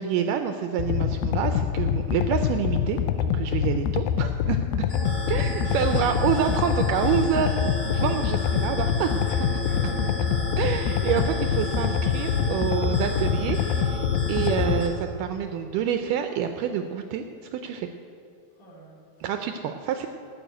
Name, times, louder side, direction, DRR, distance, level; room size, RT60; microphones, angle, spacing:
voice 1, 0.0-4.6 5.3-7.6 7.9-9.1 10.6-17.2 17.5-17.9 19.2-20.1, right 8 dB, 80° right, 7 dB, 1.9 m, -27 dB
sound 1, 0.8-14.8, left 9 dB, 85° left, 2.3 m, -25 dB
voice 2, 4.8-5.2 5.6-5.8 9.2-10.5 18.6-19.0, right 1 dB, 60° left, -4 dB, 3.8 m, -46 dB
sound 2, 4.9-14.9, equal, 25° left, 1.8 m, -32 dB
13.0 x 6.4 x 9.1 m, 2.6 s
omnidirectional pair, 4.2 m